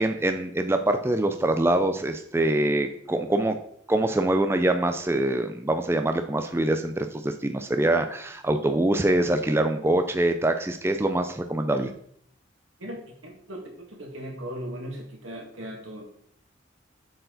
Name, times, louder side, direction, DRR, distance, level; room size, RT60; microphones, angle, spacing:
voice 1, 0.0-3.6 3.9-11.9, right 1 dB, 10° right, 7 dB, 0.3 m, -24 dB
voice 2, 12.8-16.0, equal, 90° right, 0 dB, 2.0 m, -38 dB
7.7 x 4.5 x 3.9 m, 0.64 s
head